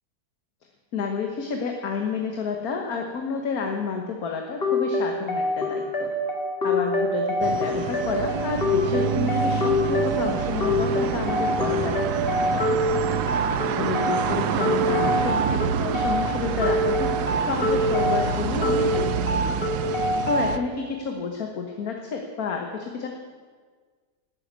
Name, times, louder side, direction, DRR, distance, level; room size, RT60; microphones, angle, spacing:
voice 1, 0.9-6.1 6.6-12.7 13.8-19.6 20.3-23.1, left 5 dB, 60° left, 3 dB, 1.7 m, -30 dB
sound 1, 4.6-20.6, left 1 dB, 35° left, 2.1 m, -26 dB
sound 2, 7.4-20.6, right 8 dB, 75° right, 1.2 m, -27 dB
12.0 x 9.8 x 9.5 m, 1.5 s
omnidirectional pair, 1.8 m